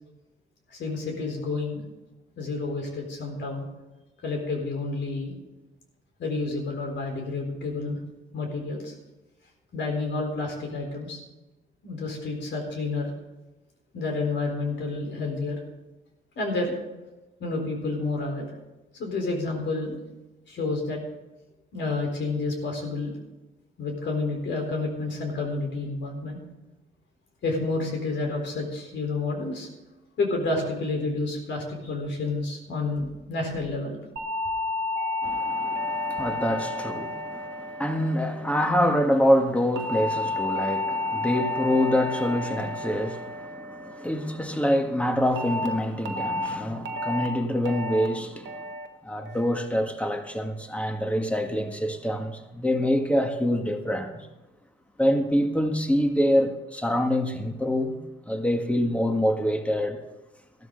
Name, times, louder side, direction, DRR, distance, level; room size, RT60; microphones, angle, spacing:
voice 1, 0.7-1.8 2.4-3.7 4.2-5.3 6.2-8.0 8.3-8.9 9.7-11.2 11.8-13.1 13.9-15.6 16.4-16.7 17.4-18.5 18.9-20.0 20.5-21.0 21.7-23.1 23.8-26.4 27.4-29.7 30.2-34.0 35.6-35.7, left 3 dB, 65° left, 4.2 m, -29 dB
sound 1, 34.2-38.6 39.8-44.2 45.4-45.7 46.1-46.5 46.9-47.3 47.7-48.1 48.5-48.9 49.3-49.7, left 2 dB, 70° right, 1.5 m, -31 dB
voice 2, 35.2-48.6 49.0-54.3 55.0-58.0 58.2-60.0, equal, 5° left, 1.7 m, -25 dB
15.0 x 12.5 x 3.9 m
cardioid pair, 90°, 20 cm